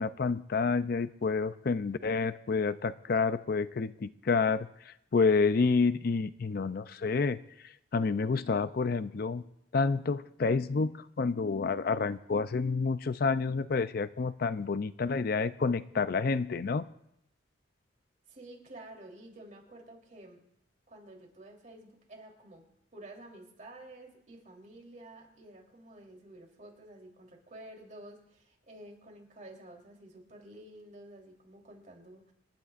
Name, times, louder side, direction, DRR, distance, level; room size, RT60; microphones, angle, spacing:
voice 1, 0.0-7.4 7.9-9.4 9.7-16.8, left 4 dB, 50° left, 13 dB, 0.4 m, -29 dB
voice 2, 18.3-20.4 20.9-22.6 22.9-32.3, right 1 dB, 40° right, 0 dB, 3.4 m, -51 dB
28.0 x 12.0 x 2.5 m, 0.81 s
head